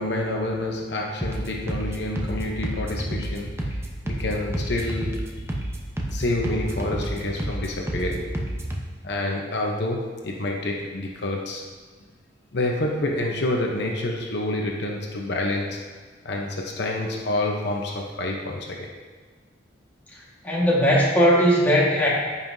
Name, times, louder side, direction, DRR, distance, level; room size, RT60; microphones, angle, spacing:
voice 1, 0.0-5.3 6.1-8.4 9.0-11.6 12.5-15.8 16.2-18.9, left 2 dB, 60° left, 0 dB, 0.8 m, -28 dB
sound 1, 1.2-8.8, right 1 dB, 15° right, 0.8 m, -30 dB
voice 2, 20.4-22.1, equal, 10° left, -6 dB, 1.6 m, -18 dB
14.0 x 5.6 x 2.7 m, 1.5 s
head